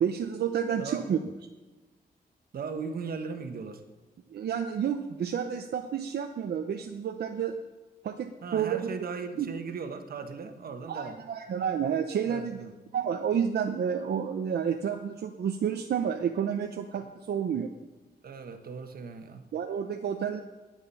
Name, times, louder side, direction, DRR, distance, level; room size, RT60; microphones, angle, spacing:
voice 1, 0.0-1.2 4.3-7.5 8.0-8.9 9.4-9.5 10.9-12.6 12.9-17.7 19.5-20.4, right 8 dB, 85° right, 5 dB, 0.8 m, -30 dB
voice 2, 2.5-3.8 8.4-11.2 12.2-12.7 18.2-19.5, right 5 dB, 65° right, 7 dB, 1.3 m, -38 dB
20.5 x 9.0 x 5.6 m, 1.2 s
wide cardioid pair, 165°, 16 cm